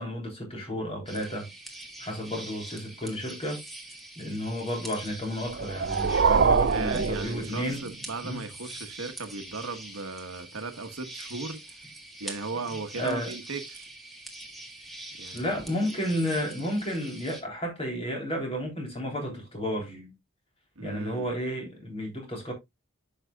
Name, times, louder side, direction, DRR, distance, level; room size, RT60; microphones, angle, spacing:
voice 1, 0.0-1.5 2.0-3.6 4.1-7.9 8.2-8.4 12.9-13.3 15.3-20.1 20.8-22.5, equal, 25° left, 3.5 m, -32 dB
sound 1, 1.1-17.4, right 1 dB, ahead, 1.5 m, -44 dB
sound 2, 5.4-8.0, right 5 dB, 55° right, 0.4 m, -25 dB
voice 2, 6.6-11.6 12.2-13.9 15.2-15.6 20.8-21.3, right 3 dB, 90° right, 1.2 m, -37 dB
10.0 x 6.4 x 2.3 m
head